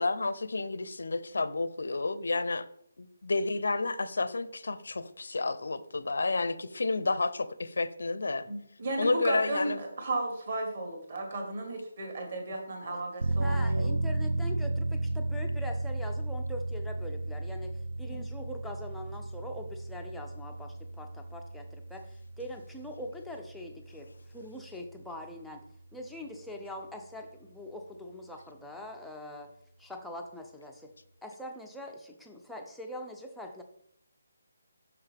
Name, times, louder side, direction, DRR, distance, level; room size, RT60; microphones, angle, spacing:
voice 1, 0.0-2.7 3.0-8.4 9.0-9.8 18.1-18.3, left 3 dB, 70° left, 15 dB, 0.5 m, -30 dB
voice 2, 8.4-13.9, right 2 dB, 40° right, 2 dB, 1.6 m, -34 dB
voice 3, 12.8-25.6 25.9-29.5 29.8-30.9 31.2-33.6, left 1 dB, ahead, 0 dB, 0.4 m, -43 dB
sound 1, 13.2-25.7 26.1-26.2, right 2 dB, 70° right, 0.4 m, -34 dB
6.2 x 5.7 x 3.4 m, 0.73 s
hypercardioid pair, 180°, 0 cm